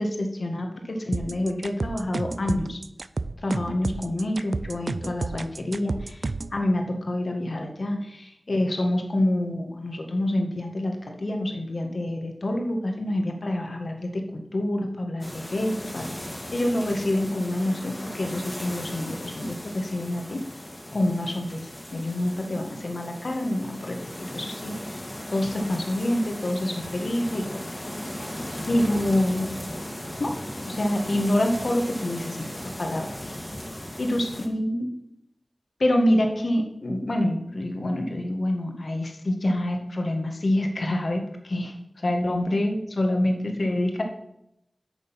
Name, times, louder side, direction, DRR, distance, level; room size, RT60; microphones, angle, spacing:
voice 1, 0.0-2.8 3.4-6.2 6.5-16.1 16.5-20.4 20.9-25.0 25.3-27.5 27.8-27.9 28.7-29.5 30.2-30.4 30.7-33.4 34.0-34.9 35.8-44.0, left 1 dB, 75° left, 3 dB, 1.6 m, -27 dB
sound 1, 1.1-6.6, right 3 dB, 75° right, 0.4 m, -31 dB
sound 2, 15.2-34.5, left 1 dB, 25° left, 1.8 m, -37 dB
9.5 x 6.5 x 5.8 m, 0.81 s
wide cardioid pair, 55°, 0 cm